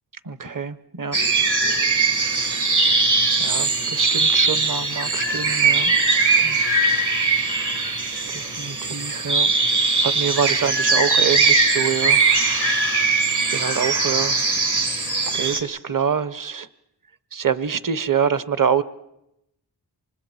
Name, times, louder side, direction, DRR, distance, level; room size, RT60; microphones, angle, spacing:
voice 1, 0.2-1.2 3.4-5.9 6.4-6.9 8.3-9.5 10.0-12.2 13.5-14.4 15.3-16.7 17.3-18.8, right 7 dB, 50° right, 15 dB, 1.0 m, -25 dB
sound 1, 1.1-15.6, right 3 dB, 65° right, 3.5 m, -20 dB
29.0 x 25.5 x 4.4 m, 0.85 s
wide cardioid pair, 50°, 42 cm